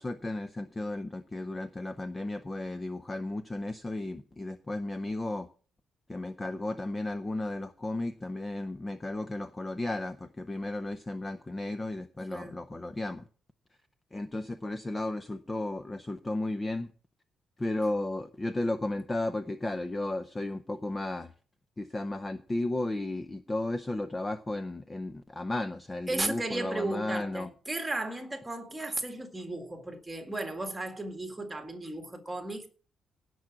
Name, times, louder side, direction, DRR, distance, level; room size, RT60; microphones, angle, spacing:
voice 1, 0.0-5.5 6.1-13.2 14.1-16.9 17.6-21.3 21.8-27.5, left 2 dB, 15° left, 0.6 m, -34 dB
voice 2, 26.1-32.7, right 2 dB, 10° right, 1.9 m, -35 dB
17.0 x 6.2 x 5.9 m
cardioid pair, 175°, 0 cm